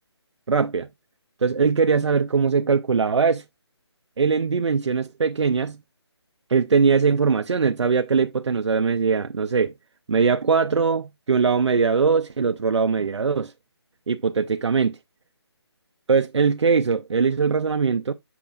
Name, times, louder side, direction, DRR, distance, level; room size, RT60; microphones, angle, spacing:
voice 1, 0.5-0.9 1.4-3.4 4.2-5.8 6.5-9.7 10.1-13.5 14.1-15.0 16.1-18.1, right 5 dB, 85° right, 0.5 m, -21 dB
7.1 x 5.8 x 2.4 m
hypercardioid pair, 165°, 14 cm